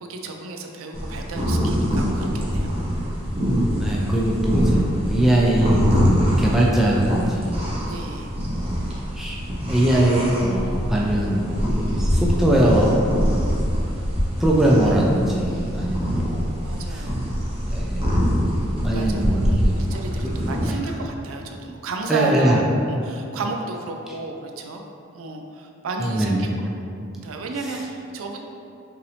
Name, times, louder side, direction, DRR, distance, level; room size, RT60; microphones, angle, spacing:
voice 1, 0.0-2.8 7.9-8.4 11.9-12.2 15.5-15.7 16.6-17.1 18.9-24.8 25.1-26.7 27.2-28.4, right 3 dB, 80° right, 3 dB, 0.4 m, -32 dB
sound 1, 0.9-20.6, equal, 30° right, 0.8 m, -24 dB
voice 2, 3.8-7.7 8.5-8.8 9.2-9.4 9.7-11.6 12.0-13.5 14.4-16.5 17.7-18.1 18.8-19.7 20.6-20.7 22.1-22.6 26.1-26.5, right 1 dB, ahead, -4 dB, 0.4 m, -21 dB
5.5 x 2.6 x 3.3 m, 2.6 s
head